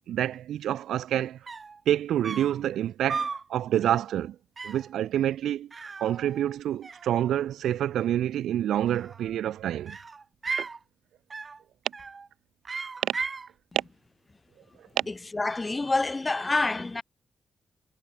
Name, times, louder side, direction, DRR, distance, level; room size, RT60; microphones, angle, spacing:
voice 1, 0.1-1.4 1.9-4.4 4.6-5.7 6.0-10.0 10.6-10.7 13.0-13.2 13.7-13.8 15.0-15.1, right 11 dB, 85° right, 1.7 m, -27 dB
sound 1, 1.2-1.3 1.5-1.8 2.2-2.6 3.1-3.5 3.8-4.1 4.6-4.9 5.7-6.6 6.8-7.5 8.8-9.4 9.9-10.8 11.3-11.6 11.9-12.3 12.7-13.5, right 4 dB, 45° right, 2.1 m, -36 dB
voice 2, 15.1-17.0, left 3 dB, 30° left, 2.1 m, -27 dB
supercardioid pair, 50°, 0 cm